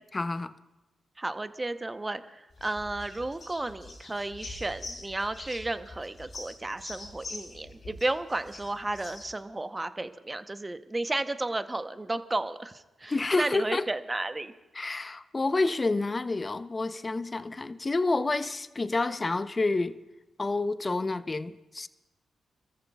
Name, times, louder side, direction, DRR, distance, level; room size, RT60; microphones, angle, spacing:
voice 1, 0.1-0.5 13.1-13.8 14.7-20.0 20.4-21.9, left 3 dB, 35° left, 0.7 m, -29 dB
voice 2, 1.2-14.5, right 2 dB, 25° right, 0.8 m, -33 dB
sound 1, 2.5-9.4, left 2 dB, 50° left, 3.6 m, -45 dB
28.5 x 14.0 x 2.4 m
supercardioid pair, 45°, 0 cm